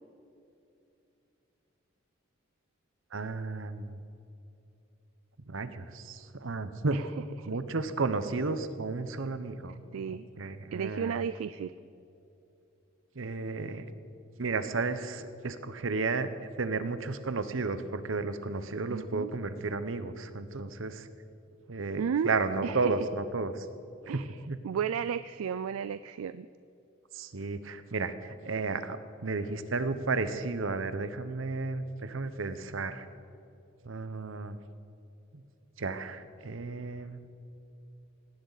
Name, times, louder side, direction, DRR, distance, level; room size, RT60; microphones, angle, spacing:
voice 1, 3.1-4.0 5.5-7.0 7.5-9.7 10.1-11.2 13.2-13.9 14.4-16.3 16.6-21.1 21.7-23.7 24.0-24.6 27.1-33.1 33.8-34.6 35.3-35.4 35.8-37.2, right 3 dB, 65° right, 11 dB, 0.9 m, -33 dB
voice 2, 9.9-10.3 10.7-11.7 18.9-19.3 22.0-22.3 22.6-22.9 24.1-24.4 24.6-26.5, right 7 dB, 90° right, 14 dB, 0.4 m, -33 dB
19.0 x 17.0 x 4.1 m, 2.7 s
head